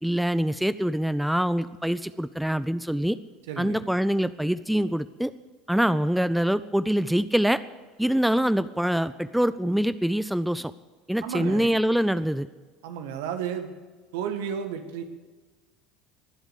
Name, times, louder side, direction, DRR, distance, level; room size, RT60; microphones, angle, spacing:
voice 1, 0.0-3.2 3.6-5.3 5.7-7.6 8.0-10.7 11.1-12.5, equal, ahead, 14 dB, 0.5 m, -24 dB
voice 2, 3.5-3.8 11.2-11.7 12.8-13.7 14.1-15.0, right 8 dB, 65° right, 7 dB, 1.7 m, -32 dB
23.0 x 8.1 x 6.7 m, 1.4 s
figure-of-eight pair, 70°, 0 cm